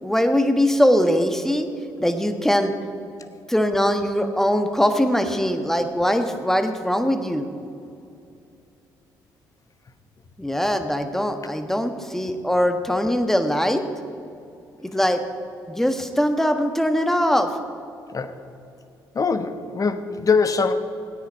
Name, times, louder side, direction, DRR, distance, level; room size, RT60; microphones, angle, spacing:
voice 1, 0.0-1.7 2.0-2.7 3.5-7.5 10.4-13.8 14.8-15.2 15.7-17.5, equal, 5° left, 7 dB, 1.3 m, -21 dB
voice 2, 19.1-20.7, left 5 dB, 40° left, 9 dB, 1.1 m, -22 dB
16.5 x 9.4 x 4.7 m, 2.6 s
hypercardioid pair, 55°, 9 cm